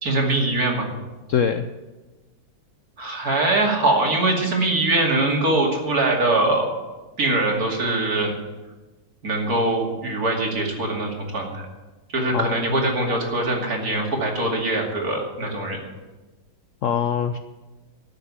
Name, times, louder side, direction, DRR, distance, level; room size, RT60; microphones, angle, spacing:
voice 1, 0.0-0.9 3.0-6.7 7.2-8.3 9.2-11.6 12.1-15.8, right 2 dB, 50° right, 0 dB, 2.9 m, -22 dB
voice 2, 1.3-1.7 12.3-12.8 16.8-17.4, left 7 dB, 90° left, 9 dB, 0.6 m, -23 dB
13.0 x 6.7 x 9.7 m, 1.2 s
omnidirectional pair, 2.0 m